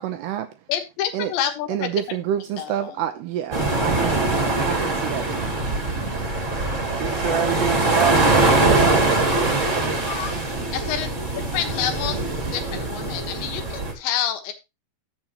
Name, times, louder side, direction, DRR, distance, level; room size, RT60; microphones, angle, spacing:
voice 1, 0.0-0.6 1.1-1.3 1.7-4.3 4.6-5.8, right 10 dB, 80° right, 2.4 m, -28 dB
voice 2, 0.7-2.2 2.6-2.9 10.1-10.4 10.7-11.1 11.3-12.2 12.5-14.5, left 10 dB, 75° left, 3.5 m, -28 dB
sound 1, 3.5-13.9, right 2 dB, 30° right, 1.5 m, -22 dB
voice 3, 7.0-9.1 9.4-10.0, right 7 dB, 60° right, 2.3 m, -27 dB
13.5 x 7.6 x 3.0 m
omnidirectional pair, 5.4 m